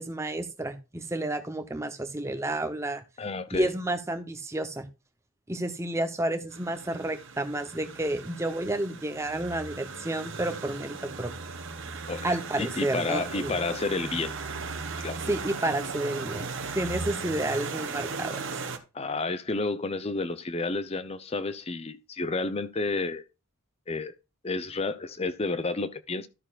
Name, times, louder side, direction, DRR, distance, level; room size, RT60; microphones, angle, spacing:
voice 1, 0.0-3.0 3.5-4.9 5.5-11.3 12.2-13.5 15.3-18.4, right 1 dB, 15° right, 0.8 m, -30 dB
voice 2, 3.2-3.7 12.1-14.4 15.0-15.2 18.9-23.2 23.9-24.1 24.4-26.3, left 3 dB, 25° left, 0.6 m, -31 dB
sound 1, 6.5-18.8, right 4 dB, 55° right, 1.1 m, -37 dB
12.5 x 6.6 x 2.4 m
head